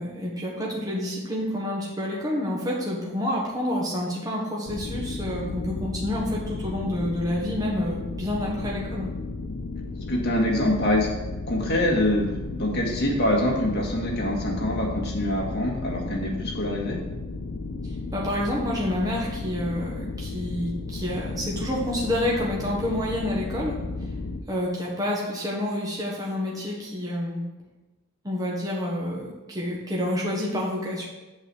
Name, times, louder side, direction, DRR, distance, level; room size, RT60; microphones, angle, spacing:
voice 1, 0.0-9.1 17.8-23.8 24.5-27.4 28.2-31.1, left 1 dB, 15° right, -4 dB, 1.3 m, -28 dB
sound 1, 4.7-24.4, left 3 dB, 75° left, 0.7 m, -34 dB
voice 2, 10.1-11.1 11.5-17.0, left 1 dB, 50° left, -1 dB, 1.8 m, -25 dB
7.9 x 4.3 x 7.0 m, 1.1 s
head